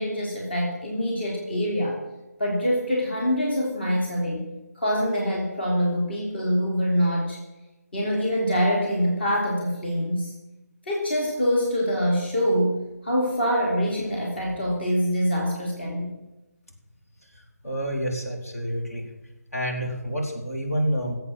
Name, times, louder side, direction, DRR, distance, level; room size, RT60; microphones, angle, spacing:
voice 1, 0.0-2.0 2.4-4.5 4.8-7.4 7.9-10.3 10.8-16.1, equal, 40° left, -1 dB, 3.0 m, -25 dB
voice 2, 17.6-19.1 19.5-21.1, equal, 60° left, 0 dB, 3.5 m, -28 dB
17.0 x 8.2 x 7.4 m, 1.0 s
figure-of-eight pair, 155°, 9 cm